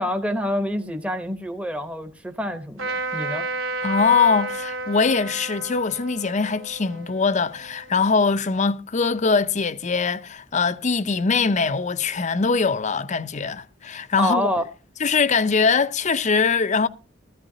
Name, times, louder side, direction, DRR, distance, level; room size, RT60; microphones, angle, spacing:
voice 1, 0.0-3.5 14.2-14.6, equal, 5° right, 0.9 m, -27 dB
Trumpet, 2.8-8.3, right 3 dB, 80° right, 2.1 m, -32 dB
voice 2, 3.8-14.5 15.0-16.9, left 5 dB, 35° left, 0.5 m, -22 dB
15.5 x 14.0 x 2.7 m
head